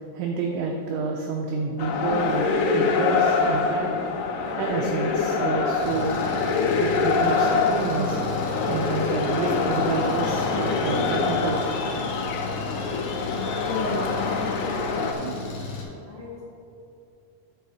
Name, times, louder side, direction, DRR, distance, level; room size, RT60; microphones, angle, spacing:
voice 1, 0.0-4.1 4.6-6.2 6.8-8.3 8.7-12.0, right 4 dB, 85° right, 1 dB, 2.5 m, -29 dB
sound 1, 1.8-15.1, left 4 dB, 85° left, 3.6 m, -25 dB
Engine, 5.8-15.8, left 3 dB, 70° left, 2.2 m, -35 dB
voice 2, 16.0-16.4, equal, 55° left, -8 dB, 1.6 m, -40 dB
8.9 x 4.9 x 6.8 m, 2.7 s
omnidirectional pair, 6.0 m